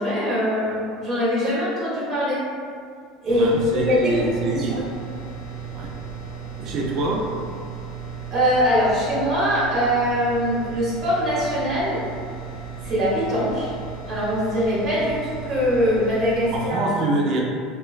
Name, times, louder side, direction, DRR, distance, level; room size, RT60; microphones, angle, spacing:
voice 1, 0.0-2.4 3.2-4.1 4.5-4.8 8.3-12.0 12.8-13.7 14.1-16.8, equal, 25° right, -9 dB, 1.0 m, -22 dB
sound 1, 3.3-16.7, right 6 dB, 75° left, 0.6 m, -35 dB
voice 2, 3.3-4.8 5.7-6.0 6.6-7.3 16.5-17.4, right 2 dB, 45° right, -1 dB, 0.4 m, -24 dB
2.9 x 2.2 x 2.3 m, 2.2 s
supercardioid pair, 140°, 0 cm